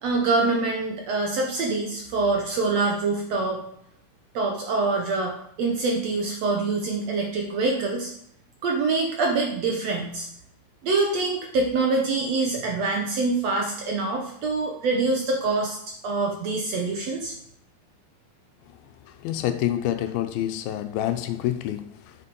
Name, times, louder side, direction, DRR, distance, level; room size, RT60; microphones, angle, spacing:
voice 1, 0.0-3.6 4.3-8.1 8.6-10.3 10.8-15.8 16.0-17.3, right 3 dB, 65° right, 1.7 m, -25 dB
voice 2, 19.1-22.2, left 12 dB, 85° left, 2.6 m, -28 dB
7.8 x 6.8 x 5.3 m
omnidirectional pair, 4.1 m